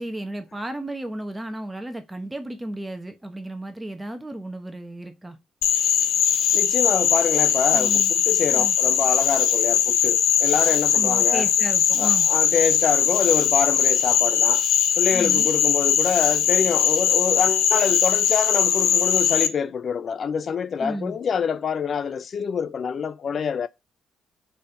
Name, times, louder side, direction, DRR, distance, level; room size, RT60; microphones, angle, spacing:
voice 1, 0.0-5.4 7.7-8.1 8.5-8.7 10.9-12.3 15.1-15.5 20.8-21.2, right 1 dB, 10° right, 1.1 m, -33 dB
Frog, 5.6-19.5, left 9 dB, 85° left, 0.9 m, -20 dB
voice 2, 6.5-11.5 12.0-14.6 15.0-23.7, left 6 dB, 50° left, 0.4 m, -26 dB
5.4 x 4.3 x 5.2 m
cardioid pair, 90°, 0 cm